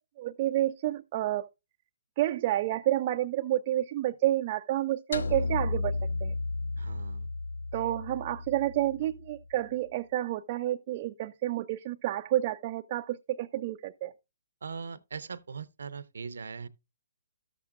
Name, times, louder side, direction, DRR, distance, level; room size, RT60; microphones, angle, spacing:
voice 1, 0.2-1.5 2.2-5.9 6.2-6.3 7.7-14.1, right 14 dB, 35° right, 0.4 m, -29 dB
sound 1, 5.1-9.5, left 3 dB, 80° left, 0.4 m, -33 dB
voice 2, 6.8-7.3 14.6-16.7, right 5 dB, 80° right, 0.7 m, -40 dB
12.5 x 7.1 x 2.4 m
hypercardioid pair, 150°, 0 cm